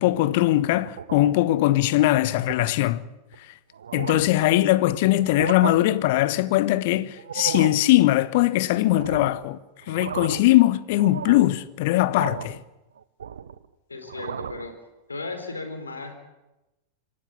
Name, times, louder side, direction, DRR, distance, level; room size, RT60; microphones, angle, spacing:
voice 1, 0.0-3.0 3.9-9.6 9.9-12.6, left 16 dB, 50° left, 1.1 m, -21 dB
sound 1, 0.8-1.4 1.9-2.1 2.5-2.7 3.3-3.4 3.7-4.4 5.2-5.7 7.2-7.8 8.9-9.5 9.8-10.5 11.0-11.5 12.2-12.6 13.0-13.7 14.0-14.7, right 8 dB, 65° right, 0.8 m, -34 dB
voice 2, 13.9-14.7 15.1-16.2, left 3 dB, 75° left, 4.0 m, -35 dB
26.5 x 15.5 x 8.5 m
figure-of-eight pair, 90°, 0 cm